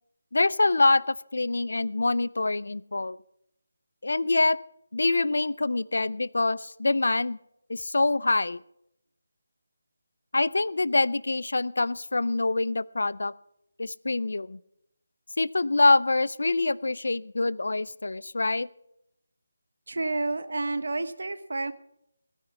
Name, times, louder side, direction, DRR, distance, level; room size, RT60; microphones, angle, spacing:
voice 1, 0.3-3.2 4.0-4.6 4.9-7.4 7.7-8.6 10.3-13.3 13.8-14.6 15.4-18.7, left 2 dB, 75° left, 21 dB, 0.5 m, -25 dB
voice 2, 19.9-21.7, right 2 dB, 75° right, 13 dB, 1.1 m, -30 dB
16.0 x 10.0 x 5.9 m, 0.80 s
figure-of-eight pair, 165°, 0 cm